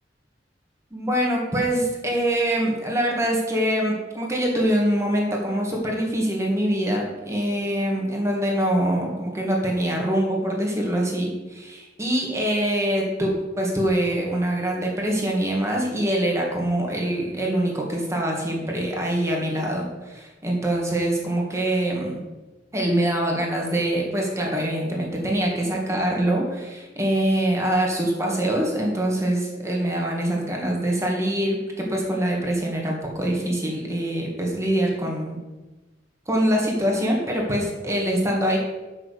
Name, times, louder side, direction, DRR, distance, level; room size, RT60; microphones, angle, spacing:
voice 1, 0.9-22.2 22.7-35.4 36.3-38.6, right 1 dB, 15° right, -1 dB, 1.9 m, -24 dB
7.7 x 6.0 x 6.5 m, 1.2 s
head